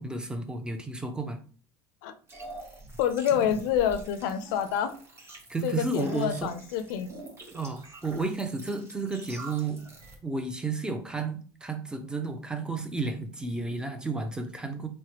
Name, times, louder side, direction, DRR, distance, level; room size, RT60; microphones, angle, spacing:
voice 1, 0.0-1.4 5.5-6.5 7.5-9.9 10.2-14.9, right 3 dB, 10° right, 7 dB, 0.5 m, -32 dB
sound 1, 2.3-10.2, right 2 dB, 25° right, 0.9 m, -46 dB
voice 2, 3.0-4.9 5.6-7.1, left 9 dB, 80° left, 9 dB, 0.4 m, -27 dB
3.2 x 2.1 x 2.9 m, 0.40 s
supercardioid pair, 110°, 11 cm